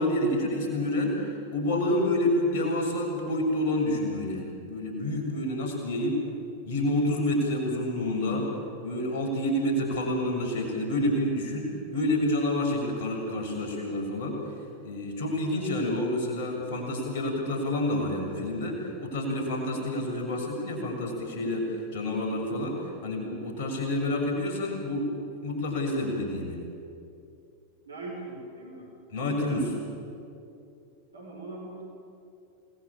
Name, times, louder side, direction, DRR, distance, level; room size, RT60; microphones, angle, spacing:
voice 1, 0.0-6.2 6.6-8.5 8.8-14.4 14.8-25.1 25.4-26.6 29.1-29.8, left 1 dB, 50° left, 1 dB, 7.2 m, -28 dB
voice 2, 27.9-28.9 31.1-31.8, right 2 dB, 70° right, -1 dB, 5.6 m, -40 dB
28.5 x 20.5 x 9.0 m, 2.6 s
figure-of-eight pair, 90°, 0 cm